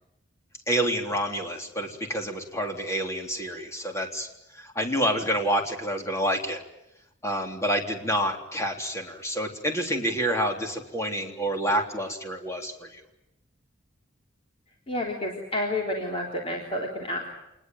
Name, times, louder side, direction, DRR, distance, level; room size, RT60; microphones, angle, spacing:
voice 1, 0.7-6.6 7.2-13.0, equal, 15° left, 3 dB, 3.6 m, -28 dB
voice 2, 14.9-17.3, left 1 dB, 30° left, 0 dB, 3.7 m, -30 dB
27.0 x 20.5 x 9.3 m, 0.86 s
head